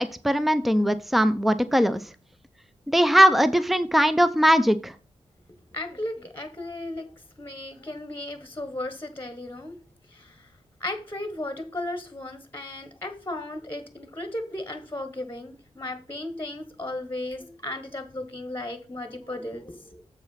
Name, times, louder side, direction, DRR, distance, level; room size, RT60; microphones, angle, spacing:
voice 1, 0.0-2.0 2.9-4.9, equal, ahead, 0.6 m, -20 dB
voice 2, 5.7-7.0 7.4-9.7 10.1-10.3 10.8-20.0, left 1 dB, 20° left, 1.4 m, -35 dB
7.4 x 4.8 x 5.6 m
cardioid pair, 45°, 13 cm